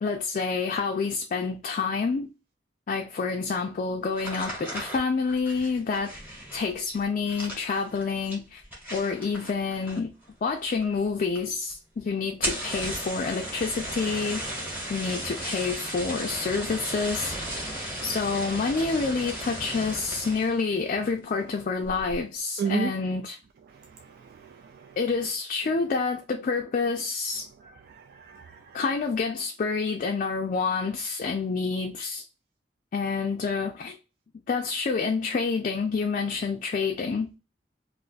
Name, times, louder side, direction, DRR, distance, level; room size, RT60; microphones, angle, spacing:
voice 1, 0.0-2.3 2.9-6.2 6.5-8.6 8.9-10.1 10.4-14.4 14.9-17.4 18.0-23.4 25.0-27.5 28.7-32.2 32.9-34.0 34.5-37.3, left 4 dB, 45° left, 0.4 m, -28 dB
sound 1, 4.1-10.3 10.5-11.1 11.4-11.5 11.7-11.8 12.3-20.6 21.0-21.4 21.8-22.2, right 1 dB, 10° right, 1.1 m, -35 dB
voice 2, 22.6-22.9 24.1-25.0 27.9-28.8, right 6 dB, 60° right, 0.3 m, -33 dB
2.4 x 2.3 x 3.9 m
head